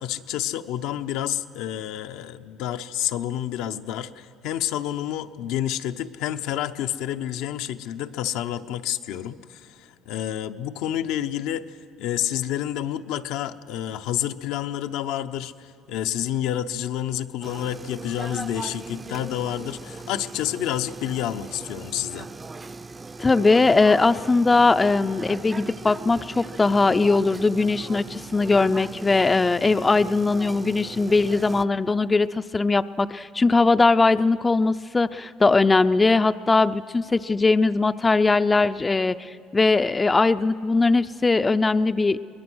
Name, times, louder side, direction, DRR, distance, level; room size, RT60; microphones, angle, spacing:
voice 1, 0.0-11.6 12.0-22.3, left 11 dB, 80° left, 8 dB, 0.7 m, -29 dB
sound 1, 17.4-31.7, right 3 dB, 25° right, 0.6 m, -39 dB
voice 2, 23.2-42.2, left 3 dB, 20° left, 12 dB, 0.4 m, -20 dB
23.5 x 20.0 x 6.2 m, 2.4 s
supercardioid pair, 90°, 0 cm